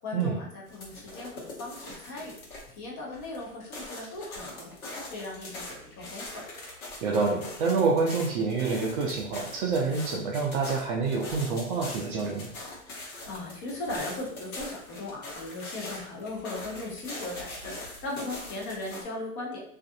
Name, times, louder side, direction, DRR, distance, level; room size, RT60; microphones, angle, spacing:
voice 1, 0.0-2.4 2.8-4.7 5.1-6.4 13.0-19.6, left 2 dB, 35° left, -2 dB, 0.9 m, -38 dB
sound 1, 0.7-2.8 3.1-19.0, left 2 dB, 70° left, 1.1 m, -42 dB
voice 2, 7.0-12.5, right 4 dB, 40° right, -1 dB, 0.4 m, -27 dB
2.5 x 2.4 x 2.5 m, 0.68 s
hypercardioid pair, 110°, 43 cm